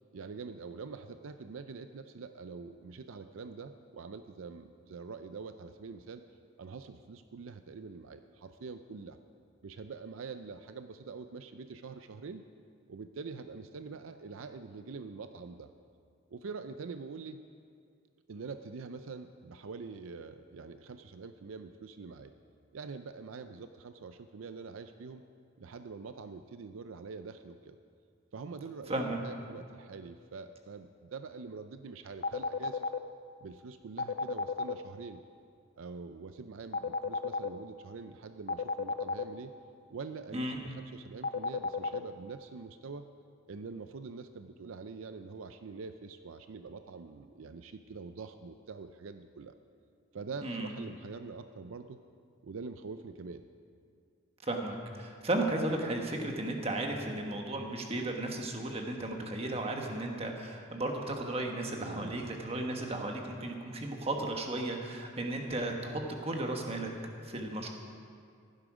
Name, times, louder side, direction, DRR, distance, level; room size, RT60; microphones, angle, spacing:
voice 1, 0.1-6.2 6.6-9.2 9.6-12.4 12.9-15.7 16.3-17.4 18.3-22.3 22.7-25.2 25.6-27.8 28.3-32.9 33.4-35.2 35.8-39.5 39.9-43.1 43.5-49.5 50.1-52.0 52.4-53.4 61.8-62.3, right 4 dB, 75° right, 9 dB, 0.5 m, -45 dB
sound 1, 32.2-33.0 34.0-34.7 36.7-37.5 38.5-39.2 41.2-42.0, left 4 dB, 45° left, 0.5 m, -32 dB
voice 2, 50.4-50.7 54.4-66.9 67.2-67.7, right 2 dB, 30° right, 2 dB, 1.3 m, -34 dB
16.0 x 11.5 x 5.0 m, 2.3 s
head